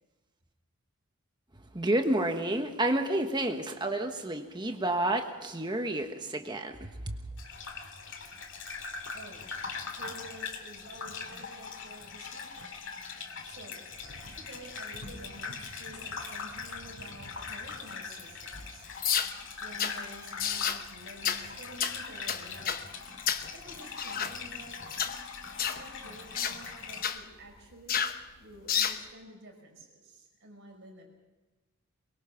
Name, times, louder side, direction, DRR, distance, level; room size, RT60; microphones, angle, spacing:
voice 1, 1.7-7.1, right 1 dB, 20° right, 5 dB, 1.2 m, -30 dB
Gurgling / Bathtub (filling or washing), 7.4-27.0, left 5 dB, 55° left, 2.3 m, -42 dB
voice 2, 8.8-9.5 9.9-12.7 13.4-13.9 14.3-19.3 19.6-22.8 23.5-24.8 25.6-28.0 28.4-31.1, right 1 dB, 55° right, 2 dB, 5.4 m, -50 dB
Cat, 13.6-18.7, equal, 90° left, 5.8 m, -50 dB
sound 1, 19.0-19.3 19.8-20.0 20.4-20.8 21.2-21.4 21.8-22.0 22.3-22.8 23.3-23.5 24.0-24.3 24.9-25.1 25.6-25.8 26.4-26.6 27.0-27.2 27.9-28.2 28.7-29.0, left 8 dB, 40° left, 1.0 m, -30 dB
22.5 x 22.5 x 5.9 m, 1.2 s
head